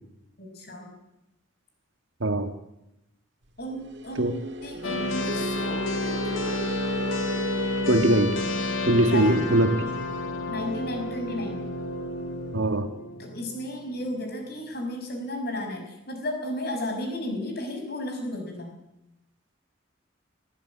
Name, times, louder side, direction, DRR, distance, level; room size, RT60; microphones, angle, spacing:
voice 1, 0.4-0.9 3.6-6.6 9.0-9.4 10.5-11.7 13.2-18.7, left 1 dB, 50° left, 4 dB, 5.9 m, -34 dB
voice 2, 2.2-2.5 4.2-4.3 7.9-8.4 8.9-9.8 12.5-12.9, right 1 dB, 80° right, 9 dB, 1.7 m, -21 dB
sound 1, 3.8-12.8, equal, 60° right, 1.9 m, -36 dB
sound 2, 4.8-14.1, left 2 dB, 85° left, 2.7 m, -31 dB
24.0 x 15.5 x 8.6 m, 0.91 s
head